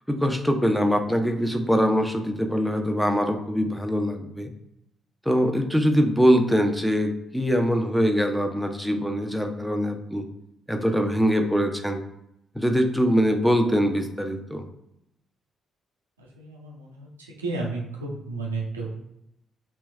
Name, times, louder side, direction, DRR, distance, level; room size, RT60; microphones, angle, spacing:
voice 1, 0.1-4.5 5.3-10.2 10.7-12.0 12.5-14.6, equal, ahead, 4 dB, 0.7 m, -23 dB
voice 2, 16.2-19.0, right 3 dB, 85° right, -2 dB, 0.6 m, -33 dB
3.4 x 3.0 x 3.2 m, 0.81 s
figure-of-eight pair, 40°, 0 cm